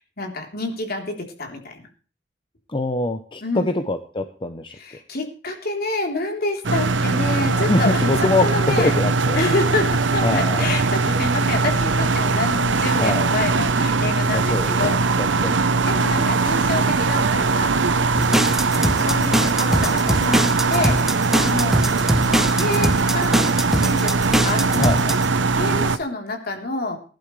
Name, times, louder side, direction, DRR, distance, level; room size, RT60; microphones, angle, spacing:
voice 1, 0.0-1.8 3.4-3.7 4.7-8.9 9.3-17.7 18.7-21.8 22.5-23.4 23.8-24.1 24.4-25.0 25.5-27.0, left 2 dB, 55° left, 2 dB, 3.7 m, -28 dB
voice 2, 2.7-4.8 7.5-9.4 10.2-10.6 13.0-13.3 14.3-15.6 24.8-25.2, left 2 dB, 30° left, 8 dB, 0.8 m, -24 dB
sound 1, 6.6-26.0, right 3 dB, 85° right, 0.8 m, -20 dB
sound 2, 18.2-25.3, equal, ahead, 1.1 m, -22 dB
19.5 x 11.5 x 3.3 m, 0.40 s
head